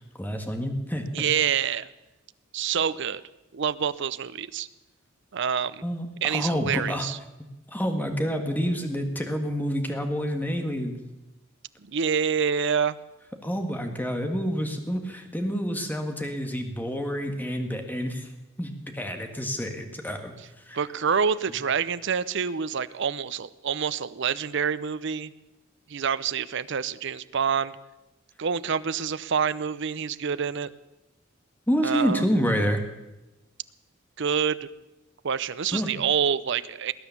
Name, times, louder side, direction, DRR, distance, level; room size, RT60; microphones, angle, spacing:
voice 1, 0.0-1.1 5.8-7.1 7.7-11.0 13.4-18.3 18.6-20.3 20.7-20.8 31.7-32.8 35.7-35.9, equal, 10° left, 5 dB, 1.7 m, -28 dB
voice 2, 1.1-1.9 2.5-3.2 3.5-4.7 5.3-5.8 6.2-7.2 11.8-13.0 20.7-25.3 25.9-27.8 28.4-30.7 31.8-32.2 34.2-34.6 35.2-36.9, right 7 dB, 60° right, 16 dB, 0.6 m, -27 dB
19.5 x 10.0 x 7.1 m, 0.99 s
head